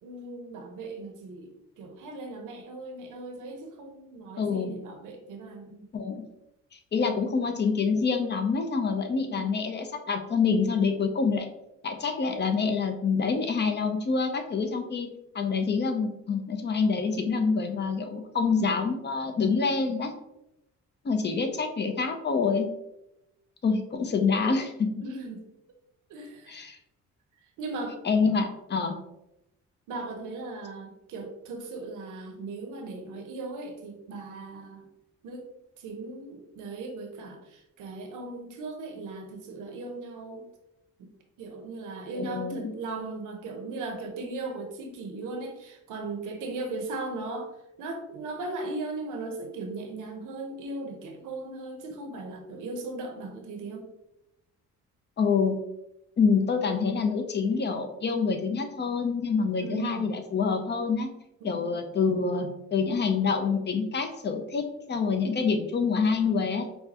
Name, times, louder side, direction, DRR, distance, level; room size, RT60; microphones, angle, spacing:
voice 1, 0.0-5.9 9.3-9.6 25.0-25.5 26.1-26.7 27.6-28.2 29.9-34.9 35.2-40.4 41.4-53.9 59.6-60.1 61.4-61.7, right 3 dB, 85° right, 4 dB, 0.9 m, -38 dB
voice 2, 4.4-4.7 5.9-6.2 6.9-11.5 11.8-15.1 15.3-20.1 21.0-22.7 23.6-24.9 26.5-26.8 28.0-29.0 42.1-42.7 55.2-55.6 56.2-61.1 61.4-66.7, left 5 dB, 35° left, 6 dB, 0.7 m, -26 dB
5.5 x 2.3 x 2.9 m, 0.87 s
cardioid pair, 90°, 30 cm